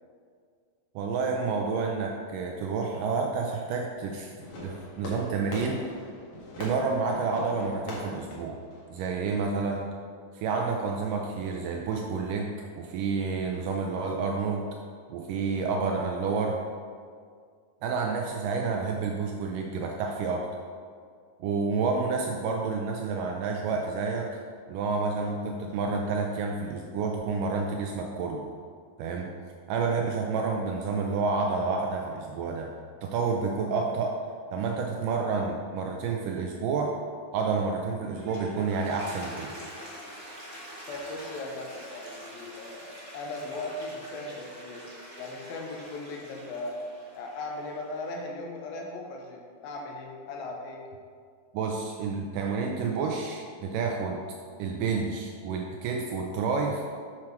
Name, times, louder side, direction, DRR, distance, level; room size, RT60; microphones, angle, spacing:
voice 1, 1.0-4.3 4.6-5.9 6.6-8.6 8.9-9.9 10.3-14.7 15.1-16.6 17.8-20.5 21.4-24.4 24.7-28.4 29.0-29.3 29.7-32.7 33.0-34.2 34.5-37.0 37.3-39.5 51.5-54.2 54.6-56.8, right 4 dB, 85° right, 1 dB, 1.9 m, -29 dB
Fireworks, 4.4-9.4, left 1 dB, 60° left, 2.7 m, -41 dB
Toilet flush, 37.9-48.2, equal, 65° right, 0.4 m, -45 dB
voice 2, 40.9-44.9 45.2-46.9 47.1-50.9, left 2 dB, 80° left, 0 dB, 2.6 m, -38 dB
7.5 x 6.1 x 4.4 m, 2.1 s
omnidirectional pair, 4.4 m